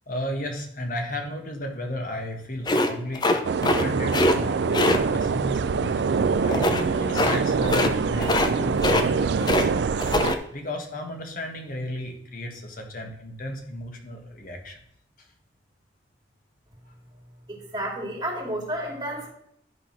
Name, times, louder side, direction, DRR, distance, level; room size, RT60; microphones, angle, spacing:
voice 1, 0.1-9.6 10.5-14.8, left 1 dB, 50° left, 3 dB, 1.5 m, -34 dB
sound 1, 2.6-3.8 4.1-4.4 4.7-5.0 6.5-6.8 7.1-7.4 7.6-7.9 8.2-8.5 8.8-9.7 10.0-10.4, left 2 dB, 25° left, 0.6 m, -22 dB
sound 2, 3.4-10.3, right 5 dB, 65° right, 0.4 m, -25 dB
voice 2, 17.5-19.3, right 1 dB, 25° right, -2 dB, 2.6 m, -31 dB
11.0 x 3.9 x 5.9 m, 0.72 s
head